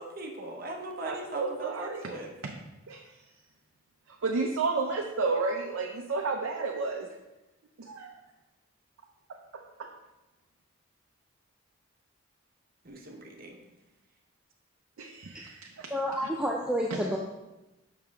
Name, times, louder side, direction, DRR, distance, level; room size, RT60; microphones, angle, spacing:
voice 1, 0.0-2.3 12.8-13.6, right 2 dB, 45° right, 1 dB, 1.0 m, -39 dB
voice 2, 1.0-2.1 2.4-2.6 2.9-3.2 4.1-7.1 7.8-8.2 9.8-9.9 15.0-15.9 16.9-17.0, right 4 dB, 85° right, 1 dB, 0.6 m, -32 dB
voice 3, 15.9-17.2, equal, 5° right, -1 dB, 0.4 m, -29 dB
6.7 x 5.6 x 3.6 m, 1.0 s
head